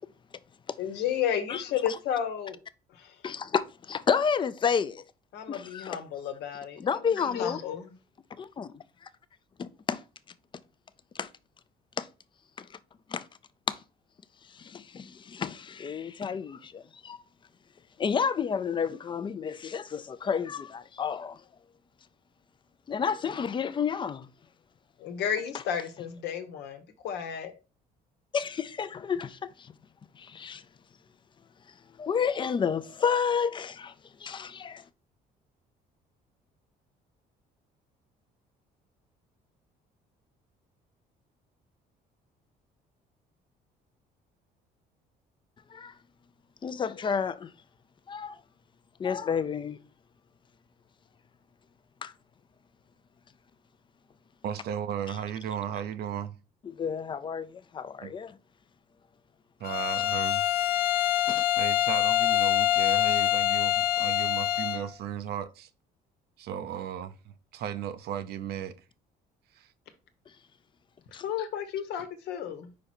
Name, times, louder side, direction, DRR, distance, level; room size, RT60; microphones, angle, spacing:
voice 1, 0.8-2.6 3.0-3.1 5.3-7.9 25.0-27.5 71.1-72.7, left 9 dB, 80° left, 1.1 m, -32 dB
voice 2, 1.5-2.0 3.2-5.0 5.5-6.0 6.8-7.6 8.6-8.7 9.6-10.0 11.1-11.3 12.0-12.1 12.6-12.7 13.1-13.3 13.7-13.8 14.5-17.2 18.0-21.4 22.9-24.3 28.3-29.7 30.1-30.6 32.0-33.9 34.2-34.8 45.7-45.9 46.6-47.5 48.1-48.4 49.0-49.8 52.0-52.1 56.7-58.4 61.3-61.5 71.1-71.2, left 6 dB, 30° left, 0.5 m, -30 dB
voice 3, 54.4-56.4 58.0-58.1 59.6-60.4 61.6-65.7 66.4-68.8 69.5-69.7, right 9 dB, 70° right, 0.7 m, -35 dB
Bowed string instrument, 59.6-64.9, left 13 dB, 65° left, 0.7 m, -25 dB
5.2 x 4.7 x 4.3 m
cardioid pair, 110°, 17 cm